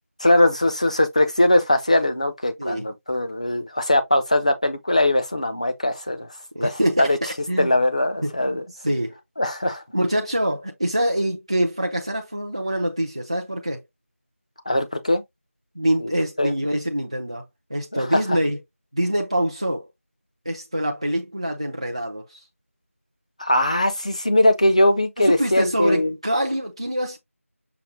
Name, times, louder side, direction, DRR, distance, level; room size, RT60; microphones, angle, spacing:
voice 1, 0.2-6.3 6.6-6.7 7.0-7.2 7.6-8.6 9.4-9.8 14.7-15.2 16.0-16.1 16.4-16.5 17.9-18.0 23.4-26.1, left 1 dB, 30° left, 0.6 m, -20 dB
voice 2, 6.5-7.7 8.2-9.1 9.9-13.8 15.8-17.4 17.7-18.6 18.9-19.9 20.5-22.5 25.2-27.2, right 1 dB, 25° right, 0.4 m, -25 dB
5.8 x 2.1 x 3.7 m
figure-of-eight pair, 175°, 8 cm